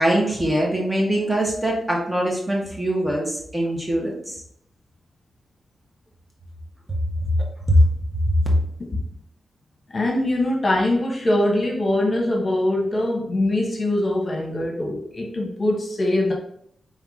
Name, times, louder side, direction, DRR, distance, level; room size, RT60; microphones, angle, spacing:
voice 1, 0.0-4.4 7.2-7.3 7.7-7.9, equal, 20° right, -2 dB, 1.4 m, -22 dB
voice 2, 9.9-16.3, left 1 dB, 45° left, -1 dB, 1.1 m, -22 dB
3.6 x 3.4 x 3.7 m, 0.70 s
cardioid pair, 50°, 0 cm